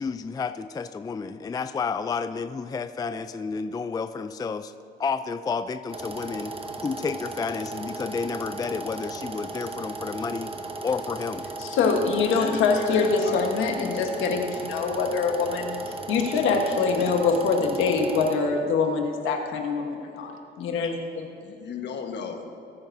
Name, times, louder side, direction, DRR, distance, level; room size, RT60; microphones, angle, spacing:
voice 1, 0.0-4.7 5.0-6.5 6.8-10.5 10.8-11.4, left 5 dB, 20° left, 11 dB, 0.3 m, -31 dB
sound 1, 5.9-18.3, right 3 dB, 25° right, 1.0 m, -36 dB
voice 2, 11.6-15.8 16.1-20.3 20.6-21.2, left 4 dB, 90° left, 3 dB, 1.3 m, -24 dB
voice 3, 12.9-13.7 21.4-22.4, left 6 dB, 60° left, 4 dB, 1.3 m, -36 dB
19.5 x 8.8 x 2.7 m, 2.7 s
cardioid pair, 90°, 20 cm